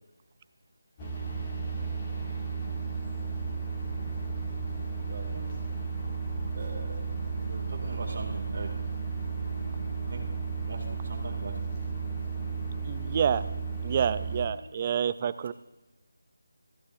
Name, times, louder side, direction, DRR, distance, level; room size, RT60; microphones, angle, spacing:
sound 1, 1.0-14.5, right 4 dB, 20° left, 2.1 m, -33 dB
voice 1, 5.1-5.5 6.5-7.1 7.4-8.8 10.1-10.2 10.7-11.6, right 3 dB, 45° right, 2 dB, 2.3 m, -40 dB
voice 2, 12.8-13.4 13.8-15.5, right 8 dB, 25° right, 14 dB, 0.4 m, -28 dB
17.5 x 14.0 x 2.6 m, 1.1 s
figure-of-eight pair, 170°, 0 cm